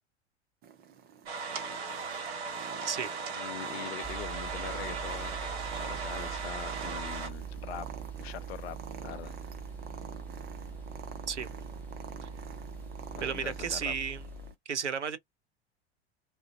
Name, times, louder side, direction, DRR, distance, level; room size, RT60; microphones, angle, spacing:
Purr, 0.6-14.5, right 8 dB, 30° right, 0.6 m, -47 dB
sound 1, 1.3-7.3, right 4 dB, 65° right, 0.9 m, -37 dB
voice 1, 3.3-7.9 8.2-8.8 9.0-9.3 13.1-14.0, left 12 dB, 65° left, 0.5 m, -43 dB
sound 2, 4.0-14.5, right 5 dB, 5° left, 0.8 m, -42 dB
voice 2, 13.2-14.2 14.7-15.2, right 7 dB, 90° right, 0.5 m, -33 dB
2.4 x 2.1 x 2.5 m
figure-of-eight pair, 85°, 34 cm